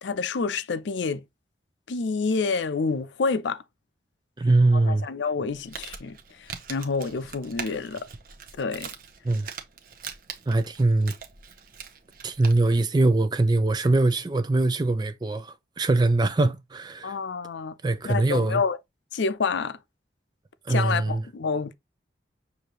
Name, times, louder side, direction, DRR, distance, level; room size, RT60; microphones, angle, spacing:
voice 1, 0.0-1.2 1.9-3.6 4.7-8.1 8.6-8.9 17.0-17.7 18.0-18.8 19.1-19.8 20.7-21.7, left 4 dB, 80° left, 0.5 m, -28 dB
voice 2, 4.4-5.1 9.2-9.5 10.5-11.1 12.2-17.2 17.8-18.6 20.7-21.2, right 2 dB, 25° right, 0.4 m, -22 dB
Crumpling crinkling, 5.4-12.8, right 6 dB, 50° right, 0.8 m, -42 dB
6.5 x 2.7 x 2.9 m
head